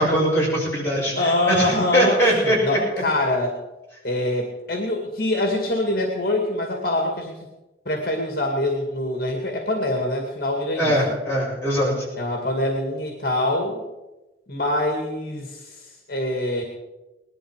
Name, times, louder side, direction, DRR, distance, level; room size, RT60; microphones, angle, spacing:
voice 1, 0.0-2.8 10.8-12.0, equal, 15° left, -6 dB, 7.6 m, -21 dB
voice 2, 1.1-3.6 4.0-7.3 7.9-10.9 12.2-13.8 14.5-16.6, left 1 dB, 55° left, 2 dB, 2.3 m, -24 dB
19.5 x 12.5 x 5.0 m, 1.1 s
head